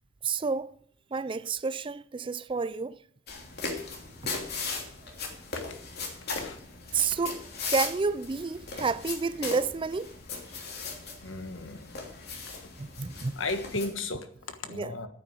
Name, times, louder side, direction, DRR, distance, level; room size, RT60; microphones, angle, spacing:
voice 1, 0.2-0.7 1.1-3.0 6.9-10.2 11.1-11.2 12.8-13.3 14.7-14.9, right 4 dB, 25° right, 0.4 m, -30 dB
sound 1, 3.3-13.9, left 4 dB, 55° left, 3.0 m, -38 dB
voice 2, 11.2-11.9 12.5-12.6 13.4-15.1, left 3 dB, 85° left, 1.4 m, -35 dB
9.5 x 9.0 x 9.4 m
head